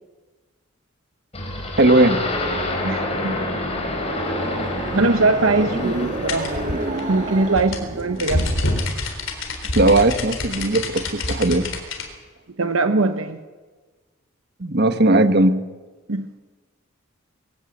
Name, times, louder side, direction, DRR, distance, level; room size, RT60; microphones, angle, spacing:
sound 1, 1.3-7.6, left 1 dB, 30° left, 4.6 m, -28 dB
voice 1, 1.8-2.2 9.7-11.7 14.6-15.5, right 2 dB, 50° right, 10 dB, 1.4 m, -17 dB
voice 2, 2.8-3.6 4.9-6.8 7.1-8.5 12.6-13.4 16.1-16.3, right 3 dB, 80° right, 9 dB, 1.0 m, -21 dB
sound 2, 3.6-9.0, right 2 dB, 35° right, 2.2 m, -31 dB
sound 3, 6.3-12.1, left 2 dB, 65° left, 3.9 m, -26 dB
22.0 x 16.0 x 8.6 m, 1.3 s
head